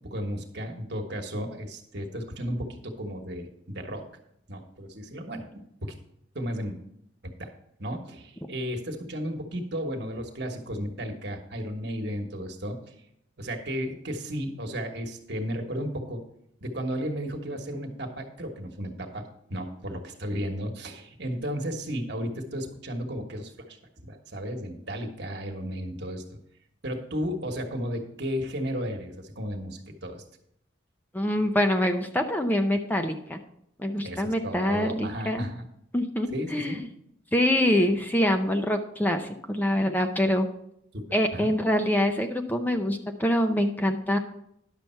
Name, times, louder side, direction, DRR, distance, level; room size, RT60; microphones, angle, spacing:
voice 1, 0.0-4.0 4.5-5.9 6.3-6.8 7.2-7.5 7.8-12.9 13.4-16.2 16.6-19.2 19.5-23.8 24.0-26.2 26.8-30.2 34.0-35.6 36.3-36.9 40.9-41.0 41.3-41.5, equal, 60° right, 4 dB, 1.4 m, -34 dB
voice 2, 31.1-33.4 33.8-35.5 35.9-36.8 37.3-40.5 41.1-44.2, left 1 dB, 10° left, 5 dB, 0.5 m, -25 dB
10.5 x 6.8 x 4.4 m, 0.74 s
head